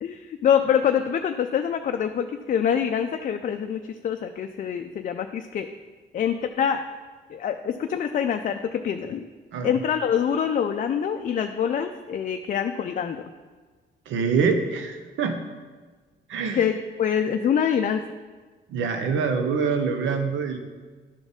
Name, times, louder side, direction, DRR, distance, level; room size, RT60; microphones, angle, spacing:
voice 1, 0.0-5.7 6.1-6.8 7.3-9.2 9.6-13.2 16.5-16.7 17.0-18.0, left 8 dB, 45° left, 6 dB, 0.4 m, -25 dB
voice 2, 14.1-15.4 16.3-16.6 18.7-20.6, right 5 dB, 75° right, 6 dB, 0.8 m, -25 dB
11.5 x 4.0 x 3.5 m, 1.4 s
cardioid pair, 90°, 20 cm